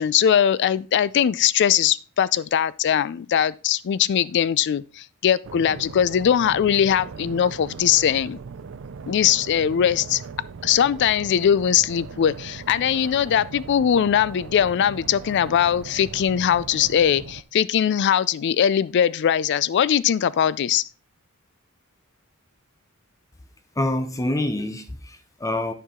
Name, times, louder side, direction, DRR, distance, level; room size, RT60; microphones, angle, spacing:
voice 1, 0.0-8.4 9.1-10.2 10.6-20.9, left 9 dB, 55° left, 0.3 m, -21 dB
sound 1, 5.4-17.4, right 5 dB, 60° right, 0.5 m, -39 dB
voice 2, 23.8-25.7, left 1 dB, 15° left, 0.6 m, -26 dB
10.0 x 4.6 x 3.7 m
head